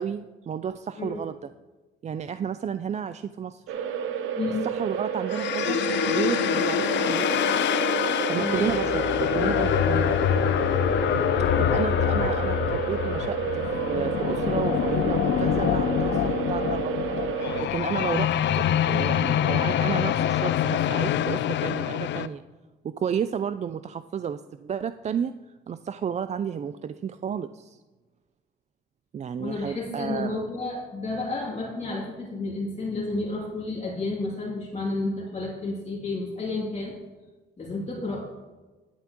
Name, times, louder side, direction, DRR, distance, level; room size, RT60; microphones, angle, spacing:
voice 1, 0.0-1.5 2.0-3.8 4.6-5.8 6.1-7.5 8.3-10.1 11.6-17.0 17.6-22.4 22.8-25.3 25.7-27.8 29.1-30.4, right 8 dB, 35° right, 12 dB, 0.4 m, -32 dB
sound 1, 3.7-17.6, right 8 dB, 85° right, 0.9 m, -30 dB
sound 2, 5.3-22.3, left 10 dB, 65° left, 0.5 m, -25 dB
sound 3, 5.8-11.0, left 10 dB, 50° left, 1.3 m, -46 dB
voice 2, 8.3-8.7 13.0-13.2 29.4-36.9 37.6-38.3, left 2 dB, 35° left, -4 dB, 2.5 m, -31 dB
11.0 x 10.5 x 2.9 m, 1.3 s
cardioid pair, 90°, 20 cm